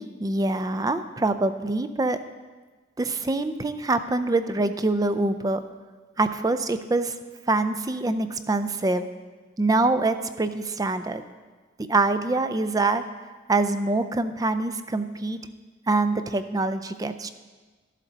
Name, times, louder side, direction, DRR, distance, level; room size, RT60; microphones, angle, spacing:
voice 1, 0.0-2.2 3.0-5.6 6.2-7.1 7.5-9.1 9.6-11.2 11.9-13.0 13.5-15.4 15.9-17.3, right 2 dB, 20° right, 11 dB, 0.4 m, -25 dB
13.0 x 7.4 x 4.0 m, 1.4 s
head